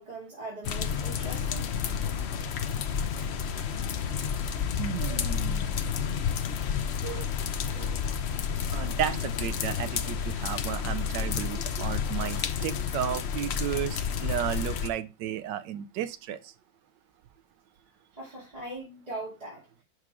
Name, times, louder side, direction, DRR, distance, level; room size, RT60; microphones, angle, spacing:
voice 1, 0.0-1.7 18.1-19.6, right 2 dB, 20° right, 2.3 m, -40 dB
sound 1, 0.6-14.9, left 7 dB, 80° left, 0.5 m, -30 dB
voice 2, 4.8-5.8 7.0-7.3 7.7-8.0 8.7-16.5, right 10 dB, 75° right, 1.3 m, -33 dB
5.9 x 4.9 x 4.7 m
omnidirectional pair, 2.0 m